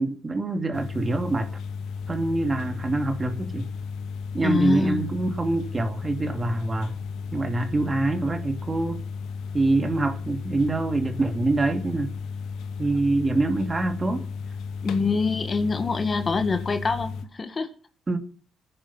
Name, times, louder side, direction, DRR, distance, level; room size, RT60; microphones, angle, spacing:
voice 1, 0.0-1.5 2.1-3.7 4.3-6.9 7.3-9.0 9.5-12.2 12.8-14.3 18.1-18.2, right 2 dB, 25° right, 2.7 m, -25 dB
sound 1, 0.7-17.2, left 5 dB, 85° left, 1.6 m, -34 dB
voice 2, 4.4-5.0 14.8-17.7, left 4 dB, 35° left, 1.8 m, -25 dB
19.0 x 10.0 x 5.7 m
cardioid pair, 90°, 0 cm